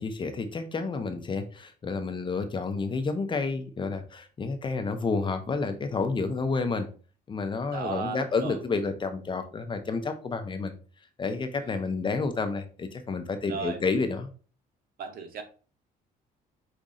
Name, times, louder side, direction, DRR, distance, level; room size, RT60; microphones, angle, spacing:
voice 1, 0.0-6.9 7.3-10.7 11.2-14.3, left 4 dB, 30° left, 8 dB, 0.7 m, -30 dB
voice 2, 7.7-8.6 13.5-13.8 15.0-15.4, right 5 dB, 60° right, 6 dB, 1.1 m, -35 dB
5.1 x 2.6 x 3.6 m, 0.38 s
cardioid pair, 110°, 17 cm